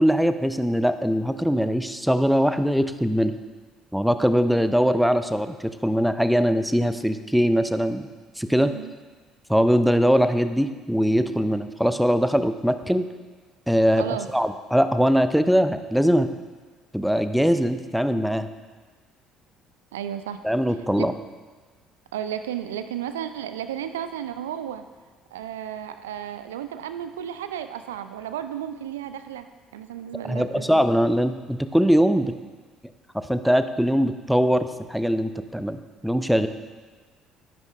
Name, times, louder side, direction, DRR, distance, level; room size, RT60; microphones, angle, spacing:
voice 1, 0.0-3.3 3.9-8.1 8.4-8.7 9.5-13.1 13.7-14.0 14.3-16.3 16.9-18.5 20.4-21.1 30.3-32.3 33.3-36.5, equal, ahead, 10 dB, 0.6 m, -21 dB
voice 2, 8.6-8.9 14.0-14.3 19.9-20.4 21.0-21.1 22.1-24.8 25.3-29.5 29.7-30.9, right 10 dB, 75° right, 10 dB, 0.4 m, -33 dB
11.5 x 10.5 x 2.5 m, 1.4 s
figure-of-eight pair, 55°, 0 cm